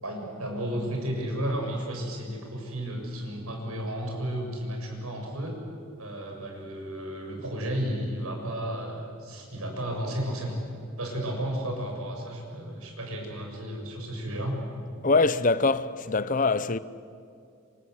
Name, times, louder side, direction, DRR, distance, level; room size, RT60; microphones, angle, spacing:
voice 1, 0.0-5.6 6.0-10.6 11.0-14.6, equal, 85° right, 7.0 m, -33 dB
voice 2, 15.0-16.8, left 3 dB, 35° left, 0.7 m, -23 dB
28.0 x 26.0 x 8.0 m
head